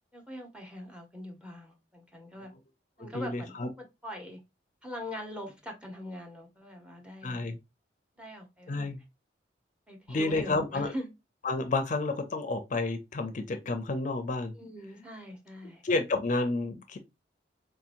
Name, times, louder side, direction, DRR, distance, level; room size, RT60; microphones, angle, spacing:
voice 1, 0.1-2.5 3.0-4.4 4.8-7.4 8.2-8.8 9.9-11.1 14.5-15.8, equal, 5° right, 0.8 m, -42 dB
voice 2, 3.1-3.7 7.2-7.6 8.7-9.0 10.1-10.9 11.4-14.5 15.8-17.0, left 3 dB, 45° left, 0.5 m, -30 dB
3.8 x 2.8 x 2.5 m
head